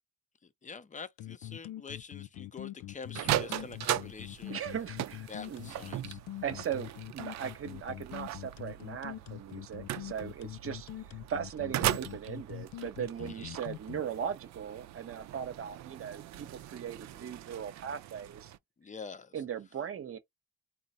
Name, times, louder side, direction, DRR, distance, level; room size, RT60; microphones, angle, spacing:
voice 1, 0.4-4.6 5.3-6.2 13.2-13.5 18.8-19.3, left 5 dB, 25° left, 0.6 m, -46 dB
sound 1, 1.2-14.0, left 14 dB, 75° left, 0.5 m, -43 dB
sound 2, 3.1-18.6, right 13 dB, 65° right, 0.5 m, -39 dB
voice 2, 4.5-5.7 6.4-18.5 19.3-20.2, right 8 dB, 45° right, 0.9 m, -39 dB
3.8 x 2.0 x 4.1 m
cardioid pair, 90°, 30 cm